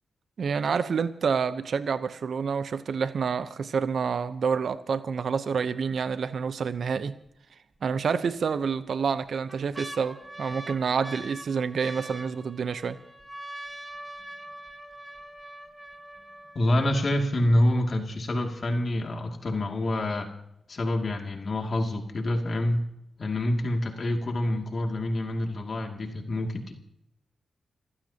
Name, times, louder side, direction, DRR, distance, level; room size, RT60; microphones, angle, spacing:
voice 1, 0.4-7.2 7.8-13.0, right 6 dB, 65° right, 0.8 m, -28 dB
sound 1, 7.2-7.3 8.3-8.8 9.2-17.2 17.9-18.0 18.2-18.7 19.1-19.2, right 1 dB, 15° right, 1.9 m, -43 dB
voice 2, 16.5-20.3 20.7-22.9 23.2-26.7, left 1 dB, 50° left, 2.4 m, -27 dB
28.0 x 15.5 x 2.9 m
cardioid pair, 60°, 0 cm